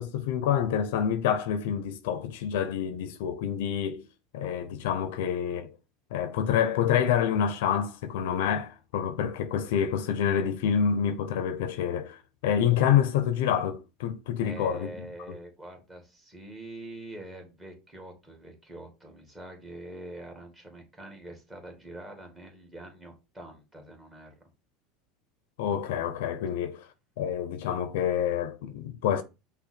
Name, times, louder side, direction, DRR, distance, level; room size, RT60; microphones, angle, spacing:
voice 1, 0.0-4.0 4.3-5.8 6.1-15.3 25.6-26.9 27.2-29.2, left 8 dB, 75° left, 0.6 m, -27 dB
voice 2, 14.4-24.3, right 1 dB, 15° right, 1.9 m, -44 dB
5.5 x 2.2 x 4.2 m
hypercardioid pair, 100°, 0 cm